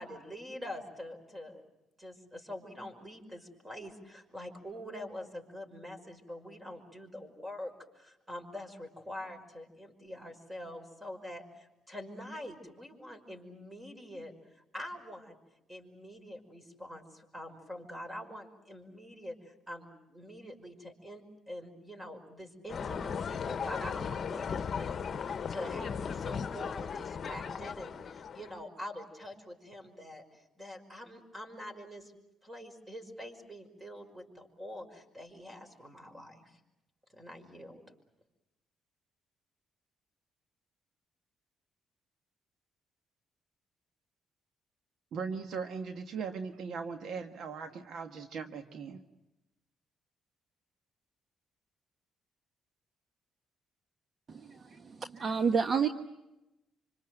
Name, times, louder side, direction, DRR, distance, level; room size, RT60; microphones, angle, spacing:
voice 1, 0.0-1.6 2.0-15.4 15.7-32.1 32.4-36.6 37.1-37.8, left 1 dB, 15° right, 6 dB, 5.5 m, -45 dB
sound 1, 22.7-28.6, left 6 dB, 50° left, 1.1 m, -37 dB
voice 2, 45.1-49.0, right 5 dB, 70° right, 7 dB, 1.5 m, -39 dB
voice 3, 54.3-55.9, right 6 dB, 45° right, 8 dB, 1.2 m, -30 dB
26.0 x 25.5 x 7.8 m, 0.94 s
cardioid pair, 90°, 0 cm